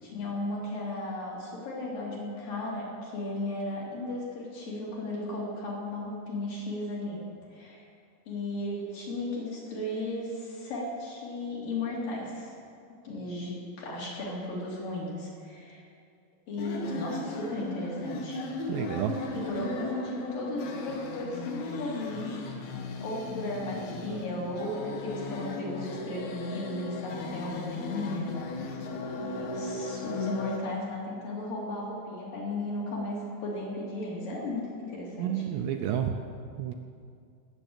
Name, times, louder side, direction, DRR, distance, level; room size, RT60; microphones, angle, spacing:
voice 1, 0.0-7.2 7.5-7.8 8.3-12.5 13.0-15.8 16.5-18.4 19.3-22.7 23.0-28.3 29.2-35.4, left 2 dB, 50° left, -4 dB, 4.5 m, -35 dB
sound 1, 16.6-30.6, left 2 dB, 75° left, 3.9 m, -37 dB
voice 2, 18.7-19.1 35.2-36.1 36.6-36.7, right 10 dB, 80° right, 5 dB, 2.7 m, -30 dB
19.5 x 7.6 x 8.8 m, 2.3 s
omnidirectional pair, 5.4 m